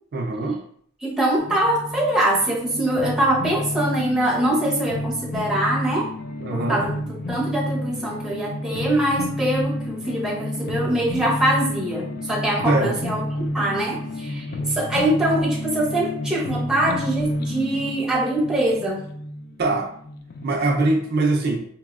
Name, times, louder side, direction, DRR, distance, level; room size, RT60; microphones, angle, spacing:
voice 1, 0.1-0.6 6.4-6.8 12.6-13.0 19.6-19.9 20.4-21.7, right 2 dB, 50° right, 0 dB, 0.4 m, -22 dB
voice 2, 1.0-6.1 6.5-19.0, right 1 dB, 5° right, -4 dB, 0.6 m, -23 dB
sound 1, 1.4-20.5, left 1 dB, 45° left, 0.3 m, -30 dB
4.0 x 2.0 x 2.3 m, 0.62 s
head